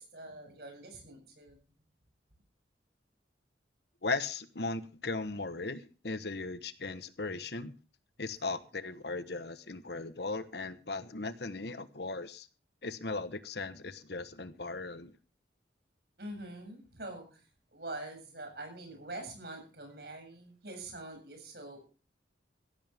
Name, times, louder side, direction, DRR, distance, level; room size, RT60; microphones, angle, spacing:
voice 1, 0.0-1.6 16.2-17.4 17.7-21.8, right 2 dB, 60° right, 3 dB, 7.7 m, -45 dB
voice 2, 4.0-7.7 8.2-12.5 12.8-15.2, left 3 dB, 65° left, 13 dB, 1.2 m, -37 dB
16.0 x 15.5 x 3.6 m, 0.35 s
head